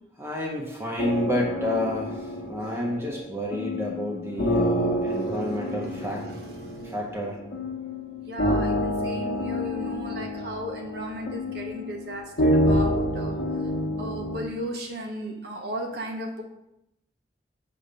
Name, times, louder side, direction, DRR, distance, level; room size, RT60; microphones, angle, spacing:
voice 1, 0.2-6.3 6.8-7.4, left 1 dB, 15° right, -2 dB, 0.9 m, -30 dB
sound 1, 1.0-14.4, equal, 90° left, 1.0 m, -28 dB
voice 2, 5.3-6.9 8.2-13.3 14.0-16.4, equal, 60° right, 1 dB, 0.9 m, -36 dB
6.6 x 2.8 x 5.3 m, 0.82 s
head